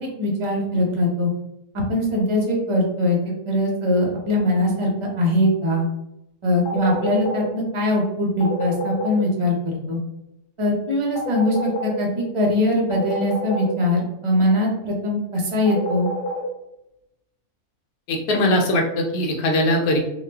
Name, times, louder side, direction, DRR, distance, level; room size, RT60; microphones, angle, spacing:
voice 1, 0.0-1.3 1.9-3.2 3.5-4.9 5.2-5.9 6.4-10.0 10.6-16.1, left 1 dB, 35° right, -2 dB, 0.5 m, -21 dB
sound 1, 6.7-7.4 8.4-9.2 11.2-11.9 12.9-13.7 15.7-16.4, equal, 60° left, 1.0 m, -28 dB
voice 2, 18.1-20.0, left 1 dB, 85° left, 1 dB, 1.2 m, -20 dB
2.8 x 2.3 x 3.3 m, 0.86 s
omnidirectional pair, 1.6 m